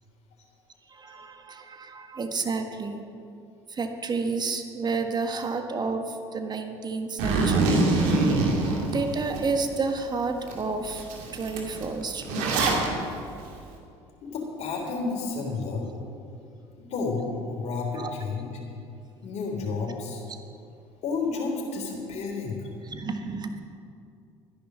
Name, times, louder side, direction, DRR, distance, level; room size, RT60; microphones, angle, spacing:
voice 1, 0.9-3.0 3.7-8.5 8.9-11.0 11.3-12.5 17.9-18.1 22.8-23.6, right 4 dB, 30° right, 6 dB, 1.5 m, -31 dB
Zipper (clothing), 7.2-9.4 9.9-10.0 10.5-10.6 10.8-12.9, right 3 dB, 65° right, 2.4 m, -24 dB
voice 2, 14.2-15.9 16.8-18.5 19.2-20.2 21.0-22.7, left 4 dB, 55° left, 0 dB, 3.5 m, -31 dB
13.0 x 10.5 x 6.3 m, 2.5 s
hypercardioid pair, 65°, 14 cm